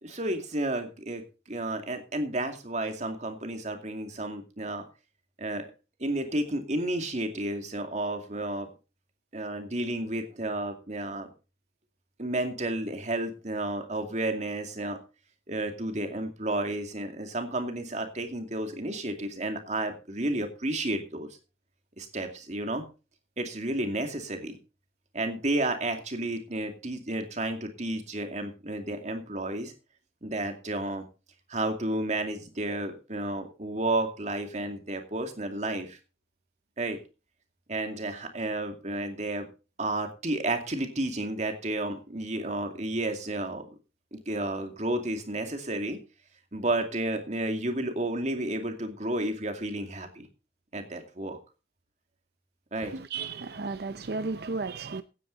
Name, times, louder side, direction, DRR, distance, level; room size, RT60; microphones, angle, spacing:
voice 1, 0.0-4.9 5.4-5.7 6.0-8.7 9.3-11.3 12.2-15.0 15.5-21.3 22.0-22.8 23.4-24.6 25.1-29.7 30.2-31.1 31.5-36.0 36.8-37.0 37.7-39.5 39.8-43.7 44.1-46.0 46.5-50.3 50.7-51.4 52.7-52.9, right 1 dB, 40° right, 2.4 m, -31 dB
voice 2, 52.8-55.0, right 4 dB, 60° right, 0.6 m, -34 dB
16.0 x 9.9 x 4.0 m
head